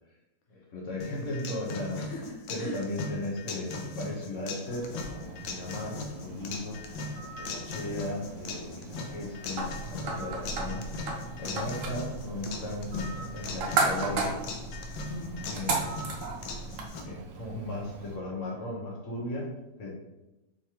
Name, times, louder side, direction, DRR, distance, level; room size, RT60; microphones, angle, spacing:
voice 1, 0.5-2.1 2.5-7.1 7.4-10.9 11.2-14.4 15.4-16.1 17.0-19.9, left 1 dB, 50° left, -2 dB, 1.1 m, -36 dB
sound 1, 1.0-17.0, left 3 dB, 90° left, 1.4 m, -39 dB
voice 2, 2.0-2.8 15.1-15.6, left 1 dB, 70° left, -1 dB, 0.7 m, -41 dB
Bird, 4.6-18.2, right 3 dB, 80° right, 1.3 m, -46 dB
sound 2, 9.6-16.9, right 3 dB, 60° right, 0.8 m, -33 dB
4.8 x 3.2 x 2.9 m, 0.98 s
omnidirectional pair, 2.0 m